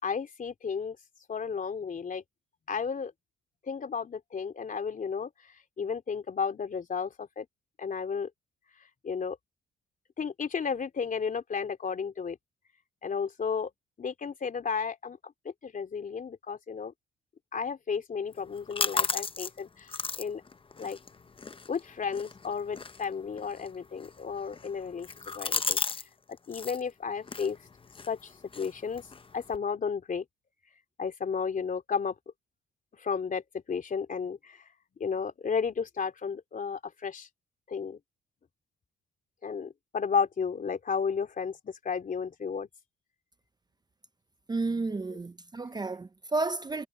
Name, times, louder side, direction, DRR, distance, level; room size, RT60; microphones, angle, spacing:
voice 1, 0.0-1.0 1.3-2.2 2.7-3.1 3.7-5.3 5.8-7.5 7.8-8.3 9.0-9.4 10.2-12.4 13.0-13.7 14.0-15.3 15.6-16.9 17.5-20.4 20.8-21.0 21.7-25.8 26.3-27.6 28.1-29.0 29.3-30.2 31.0-32.1 33.0-33.4 33.7-34.6 35.0-37.3 37.7-38.0 39.4-42.7, left 6 dB, 40° left, 3.4 m, -33 dB
sound 1, 18.3-26.1 26.3-26.8 27.2-29.6, left 4 dB, 25° left, 0.9 m, -36 dB
voice 2, 44.5-46.9, right 3 dB, 20° right, 0.8 m, -31 dB
cardioid pair, 90°, 20 cm